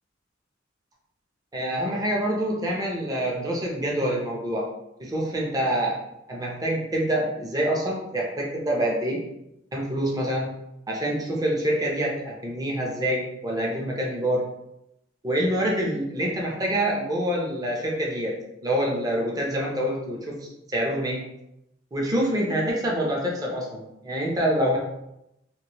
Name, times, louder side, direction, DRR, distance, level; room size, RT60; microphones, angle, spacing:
voice 1, 1.5-4.7 5.0-6.0 6.3-9.2 9.7-10.5 10.9-14.4 15.2-18.3 18.6-20.4 20.7-21.2 21.9-24.8, right 1 dB, 20° right, -2 dB, 0.7 m, -26 dB
3.0 x 2.6 x 3.0 m, 0.84 s
head